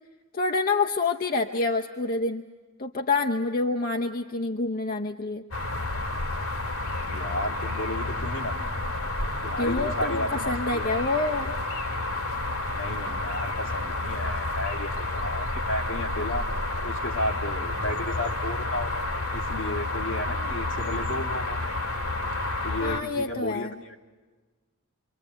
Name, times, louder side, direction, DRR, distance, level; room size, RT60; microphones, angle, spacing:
voice 1, 0.3-2.4 2.8-5.4 9.6-11.6 22.8-23.7, left 3 dB, 45° left, 3 dB, 0.8 m, -27 dB
sound 1, 5.5-23.0, left 2 dB, 75° left, 2.0 m, -30 dB
voice 2, 7.0-8.8 9.4-11.0 12.7-16.5 16.8-19.1 19.3-21.8 22.6-24.0, left 1 dB, 60° left, 2 dB, 2.1 m, -33 dB
27.5 x 23.5 x 7.9 m, 1.4 s
head